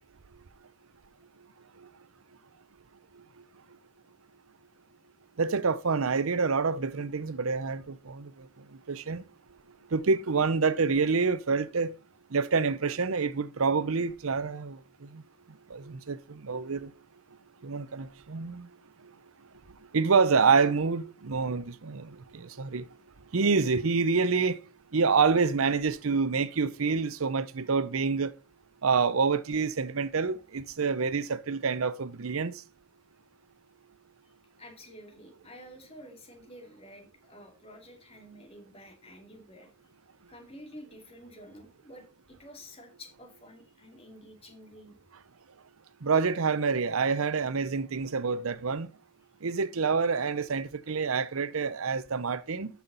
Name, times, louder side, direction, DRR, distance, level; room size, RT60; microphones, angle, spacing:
voice 1, 5.4-8.3 8.9-9.2 9.9-11.9 12.3-14.8 15.7-16.2 16.4-16.9 17.6-18.6 19.9-22.8 23.3-24.6 24.9-28.3 28.8-32.5 46.0-48.9 49.4-52.7, right 5 dB, 85° right, 0.7 m, -27 dB
voice 2, 34.6-39.9 40.3-45.0, equal, 30° left, 2.4 m, -50 dB
13.0 x 5.8 x 4.0 m
head